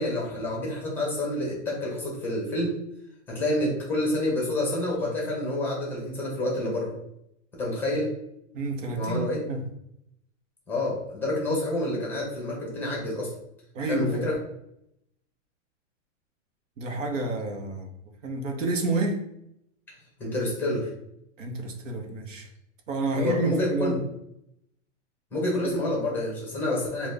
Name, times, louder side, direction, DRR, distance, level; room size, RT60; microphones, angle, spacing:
voice 1, 0.0-2.7 3.3-6.9 7.6-8.1 9.0-9.4 10.7-13.3 13.9-14.4 20.2-20.9 23.1-23.9 25.3-27.1, left 1 dB, 5° left, 0.7 m, -28 dB
voice 2, 8.5-9.7 13.7-14.3 16.8-17.9 18.2-19.2 21.4-22.5 22.9-24.0 25.5-25.6, right 2 dB, 85° right, 1.0 m, -29 dB
3.9 x 2.4 x 3.3 m
supercardioid pair, 165°, 37 cm